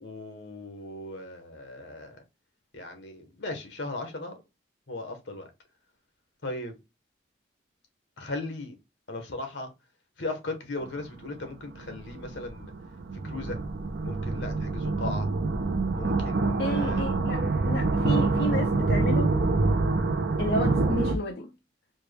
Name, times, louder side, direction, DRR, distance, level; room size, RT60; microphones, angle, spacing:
voice 1, 0.0-2.2 2.7-4.4 4.9-5.5 6.4-6.7 8.2-8.7 9.1-9.7 10.2-12.7 13.2-13.6 14.0-15.3 15.9-17.0, left 2 dB, 75° left, 1.1 m, -37 dB
sound 1, 10.9-11.0 11.7-21.2, right 3 dB, 60° right, 0.5 m, -26 dB
voice 2, 16.6-19.3 20.4-21.5, left 1 dB, 55° left, 0.5 m, -31 dB
4.3 x 2.2 x 3.3 m
head